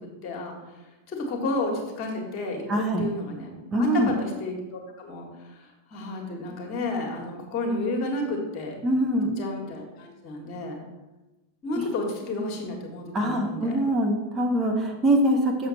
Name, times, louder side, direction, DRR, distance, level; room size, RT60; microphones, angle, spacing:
voice 1, 0.2-0.8 1.1-8.8 9.4-10.8 11.6-13.8, left 2 dB, 40° left, 2 dB, 1.8 m, -32 dB
voice 2, 2.7-3.0 3.7-4.1 8.8-9.3 13.1-15.7, right 1 dB, 20° right, 1 dB, 1.0 m, -23 dB
7.2 x 6.9 x 4.2 m, 1.1 s
figure-of-eight pair, 90°, 0 cm